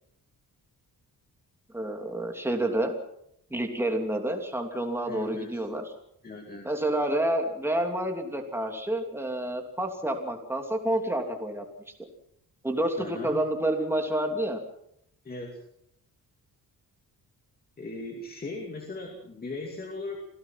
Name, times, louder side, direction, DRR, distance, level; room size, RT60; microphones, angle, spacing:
voice 1, 1.7-3.0 3.5-5.8 6.6-11.6 12.6-14.6, right 1 dB, 5° right, 3 dB, 2.9 m, -29 dB
voice 2, 5.1-5.6 6.2-6.8 13.0-13.4 15.2-15.6 17.8-20.2, left 2 dB, 25° left, 2 dB, 2.6 m, -38 dB
27.0 x 17.0 x 5.9 m, 0.74 s
wide cardioid pair, 160°, 37 cm